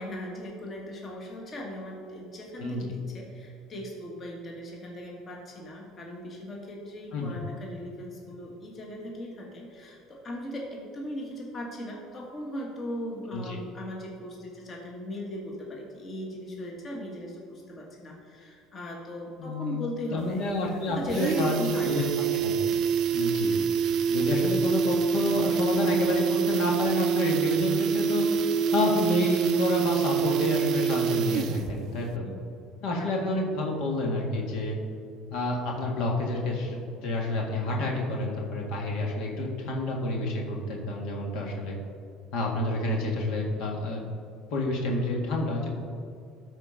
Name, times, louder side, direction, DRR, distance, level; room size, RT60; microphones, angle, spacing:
voice 1, 0.0-20.5 20.9-22.1 32.2-32.4 32.9-33.1, equal, 35° left, -1 dB, 1.6 m, -38 dB
voice 2, 19.4-19.8 20.1-21.6 21.9-22.0 22.3-22.8 23.1-23.6 24.1-28.2 28.7-32.3 32.8-34.8 35.3-41.7 42.3-44.0 44.5-45.7, left 2 dB, 70° left, -1 dB, 1.9 m, -29 dB
sound 1, 20.2-20.3 20.6-20.7 21.0-31.8 32.1-32.2, right 7 dB, 55° right, 0.4 m, -26 dB
12.5 x 4.5 x 5.6 m, 2.5 s
cardioid pair, 120°, 0 cm